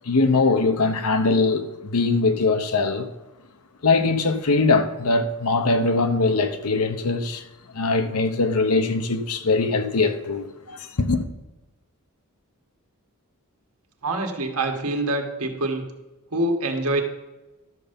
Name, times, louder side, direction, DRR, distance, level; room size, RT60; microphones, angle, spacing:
voice 1, 0.1-3.1 3.8-7.4 7.7-11.2, left 3 dB, 85° left, 0.9 m, -21 dB
voice 2, 14.0-15.8 16.3-17.0, right 2 dB, 80° right, 1.6 m, -25 dB
12.5 x 6.8 x 5.2 m
head